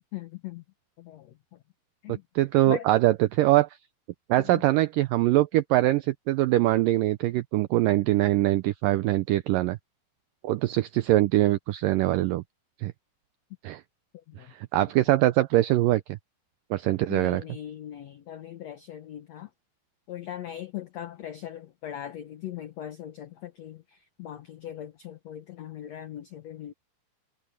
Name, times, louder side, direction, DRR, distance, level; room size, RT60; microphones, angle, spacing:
voice 1, 0.1-0.6 1.0-1.6 2.0-2.2 2.6-2.9 4.4-4.6 14.3-14.5 17.1-19.5 20.1-26.7, left 11 dB, 85° left, 1.5 m, -39 dB
voice 2, 2.4-3.7 4.3-9.8 10.4-12.4 12.8-12.9 13.6-13.8 14.5-16.0 16.7-17.4, right 16 dB, 90° right, 1.9 m, -23 dB
omnidirectional pair, 4.6 m